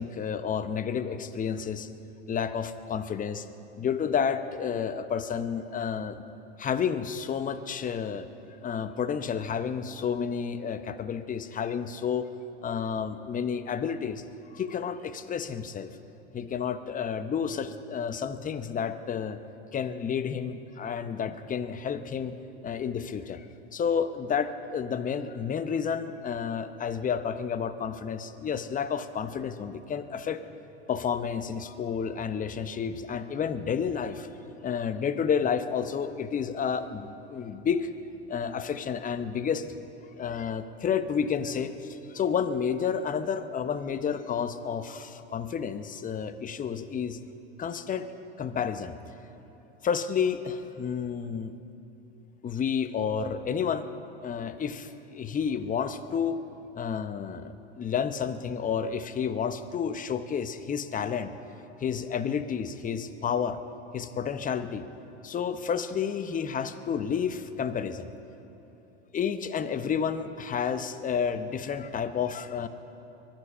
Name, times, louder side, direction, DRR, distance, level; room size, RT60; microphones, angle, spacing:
voice 1, 0.0-1.9 2.3-3.5 3.8-6.2 6.6-8.3 8.6-12.3 12.6-14.2 14.5-15.9 16.3-19.4 19.7-22.3 22.6-23.4 23.7-30.4 30.9-34.3 34.6-37.9 38.3-39.7 40.2-47.2 47.6-48.1 48.4-49.0 49.8-51.5 52.4-53.9 54.2-56.4 56.8-61.3 61.8-63.6 63.9-64.9 65.2-68.1 69.1-72.7, left 7 dB, 25° left, 11 dB, 0.8 m, -30 dB
23.0 x 10.5 x 5.6 m, 3.0 s
hypercardioid pair, 90°, 34 cm